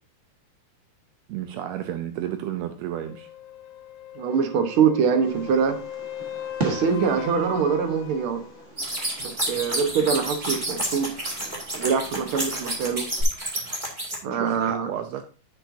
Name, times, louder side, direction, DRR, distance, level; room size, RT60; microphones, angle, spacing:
voice 1, 1.3-3.3 14.2-15.2, right 11 dB, 85° right, 8 dB, 1.5 m, -32 dB
sound 1, 3.0-8.7 12.8-12.9, left 10 dB, 80° left, 2.3 m, -38 dB
voice 2, 4.1-5.8 6.6-8.4 9.2-11.1 11.7-13.1 14.2-14.9, right 6 dB, 60° right, 6 dB, 1.5 m, -23 dB
Fireworks, 5.2-13.2, right 3 dB, 40° right, 1.0 m, -39 dB
sound 2, 8.8-14.2, right 1 dB, 15° right, 1.8 m, -29 dB
10.0 x 6.7 x 2.7 m, 0.37 s
omnidirectional pair, 3.8 m